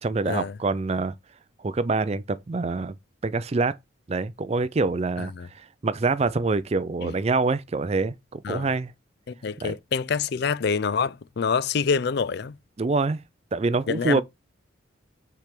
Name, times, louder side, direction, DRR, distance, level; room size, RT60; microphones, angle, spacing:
voice 1, 0.0-1.1 1.6-3.0 3.2-3.8 4.1-8.9 9.6-9.7 12.8-13.2 13.5-14.2, right 3 dB, 30° right, 0.4 m, -25 dB
voice 2, 9.3-12.6 13.9-14.2, left 5 dB, 55° left, 0.4 m, -26 dB
5.9 x 3.5 x 5.8 m
head